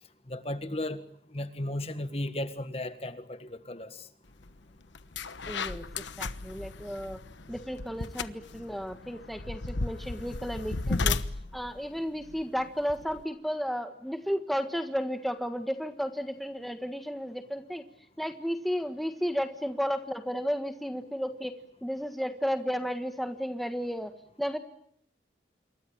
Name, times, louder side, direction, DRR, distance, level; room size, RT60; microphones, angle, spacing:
voice 1, 0.3-1.0 1.3-4.1, left 1 dB, 35° left, 10 dB, 1.6 m, -35 dB
sound 1, 4.4-4.6 4.9-13.2, left 3 dB, 85° left, 1.1 m, -35 dB
voice 2, 5.5-5.8 6.2-7.2 7.5-11.2 11.5-17.8 18.2-21.5 21.8-24.1 24.4-24.6, equal, ahead, 7 dB, 1.5 m, -33 dB
28.0 x 23.0 x 8.7 m, 0.72 s
head